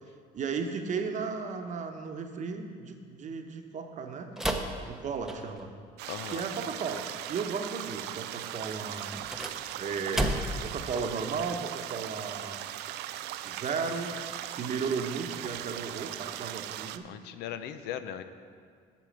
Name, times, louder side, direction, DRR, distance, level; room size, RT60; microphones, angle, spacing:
voice 1, 0.3-4.3 4.8-5.7 6.3-9.1 9.8-10.4 10.6-12.6 13.4-14.1 14.5-17.1, right 5 dB, 45° right, 5 dB, 1.0 m, -35 dB
sound 1, 4.3-5.8 9.1-10.7, right 1 dB, 5° right, 0.8 m, -33 dB
sound 2, 6.0-17.0, right 13 dB, 85° right, 0.4 m, -39 dB
voice 2, 6.1-6.4 17.0-18.2, left 10 dB, 85° left, 11 dB, 0.6 m, -38 dB
8.4 x 6.2 x 7.4 m, 2.1 s
cardioid pair, 110°, 17 cm